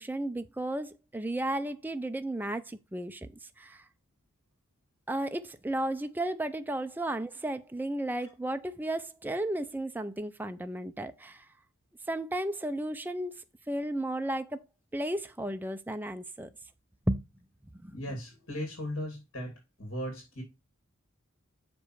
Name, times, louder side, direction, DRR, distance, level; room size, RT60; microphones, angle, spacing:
voice 1, 0.0-3.3 3.6-3.8 5.1-11.4 12.1-13.4 13.7-14.6 14.9-16.5 17.1-17.2 17.8-18.0, right 1 dB, 10° right, 0.5 m, -33 dB
voice 2, 17.9-20.4, equal, 65° left, 2.9 m, -37 dB
6.8 x 5.2 x 4.7 m
head